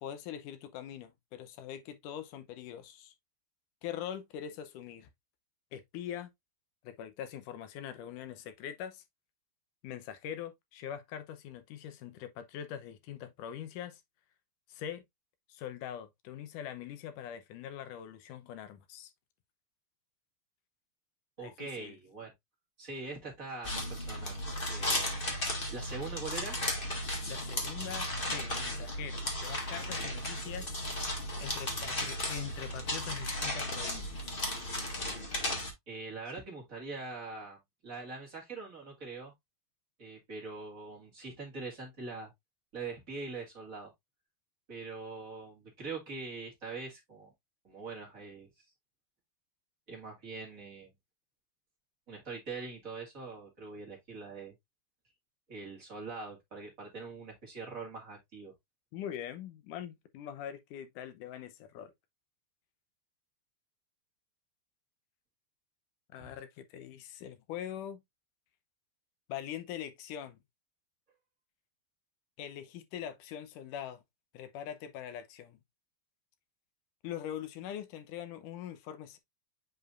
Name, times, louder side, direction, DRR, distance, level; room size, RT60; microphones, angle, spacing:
voice 1, 0.0-3.1 3.8-5.1 5.7-6.3 6.8-9.0 9.8-14.0 14.7-15.0 15.5-19.1 21.4-22.0 27.3-30.9 31.4-34.2 58.9-61.9 66.1-68.0 69.3-70.4 72.4-74.0 74.3-75.6 77.0-79.2, left 10 dB, 70° left, 2.2 m, -43 dB
voice 2, 21.4-22.3 22.8-24.4 24.7-25.2 25.7-26.6 30.0-30.1 35.9-37.6 37.8-39.3 40.0-42.3 42.7-43.9 44.7-47.3 47.6-48.5 49.9-50.9 52.1-54.5 55.5-58.5 66.2-66.3, right 3 dB, 30° right, 1.9 m, -43 dB
sound 1, 23.6-35.7, left 1 dB, 90° left, 0.4 m, -35 dB
7.9 x 4.8 x 2.5 m
omnidirectional pair, 4.2 m